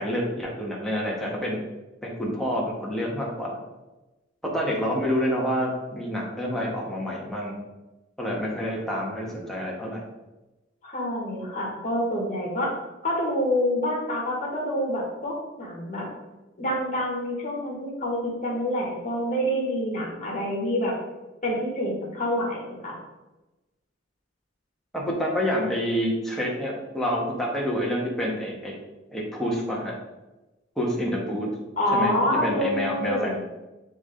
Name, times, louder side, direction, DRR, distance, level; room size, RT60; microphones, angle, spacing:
voice 1, 0.0-1.6 2.0-3.6 4.5-7.6 8.2-10.0 24.9-28.7 29.1-29.9 30.8-31.5 31.9-33.4, equal, ahead, -4 dB, 1.5 m, -28 dB
voice 2, 10.8-12.7 13.0-16.1 16.6-20.9 21.4-23.0 31.8-33.4, equal, 45° left, -3 dB, 2.1 m, -27 dB
9.1 x 3.6 x 3.8 m, 1.1 s
head